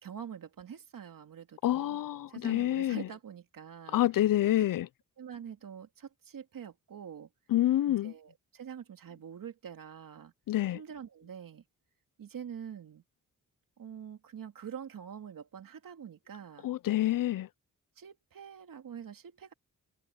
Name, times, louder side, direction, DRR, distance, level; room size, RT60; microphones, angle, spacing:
voice 1, 0.0-2.0 2.3-4.0 4.6-4.7 5.2-7.3 7.9-10.3 10.7-11.6 12.2-13.0 13.8-16.7 18.0-19.5, right 8 dB, 75° right, 2.6 m, -45 dB
voice 2, 1.6-3.1 3.9-4.9 7.5-8.1 10.5-10.8 16.6-17.5, left 13 dB, 75° left, 0.5 m, -27 dB
cardioid pair, 90°, 34 cm